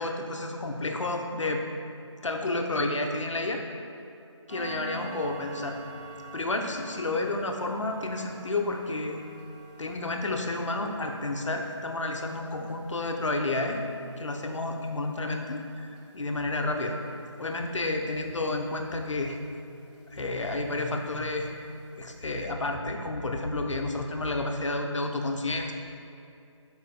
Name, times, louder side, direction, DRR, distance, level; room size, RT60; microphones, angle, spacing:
voice 1, 0.0-1.6 2.2-3.6 4.5-5.8 6.3-9.2 9.8-13.8 14.2-17.0 17.4-19.4 20.1-21.5 22.0-25.7, left 2 dB, 75° left, 3 dB, 0.8 m, -30 dB
sound 1, 4.5-19.6 19.9-20.2 20.6-20.7 21.2-21.3 21.7-21.8 22.1-22.3, right 2 dB, 15° right, 0.7 m, -47 dB
6.5 x 4.7 x 3.5 m, 2.5 s
figure-of-eight pair, 175°, 16 cm